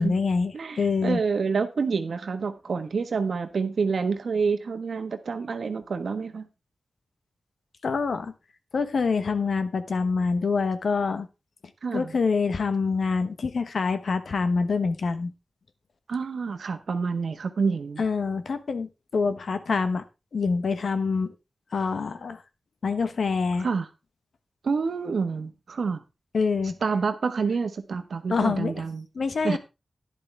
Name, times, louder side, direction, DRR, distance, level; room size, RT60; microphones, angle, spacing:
voice 1, 0.0-1.2 7.8-8.3 8.7-11.3 11.9-15.3 18.0-20.0 20.3-21.3 21.7-22.4 22.8-23.7 26.3-26.8 28.3-28.8 29.1-29.6, left 4 dB, 80° left, 1.2 m, -26 dB
voice 2, 0.5-6.5 11.8-12.1 16.1-18.0 23.6-23.9 24.6-26.0 26.8-29.1 29.4-29.6, right 5 dB, 85° right, 1.3 m, -28 dB
11.5 x 10.5 x 3.4 m
wide cardioid pair, 65°, 0 cm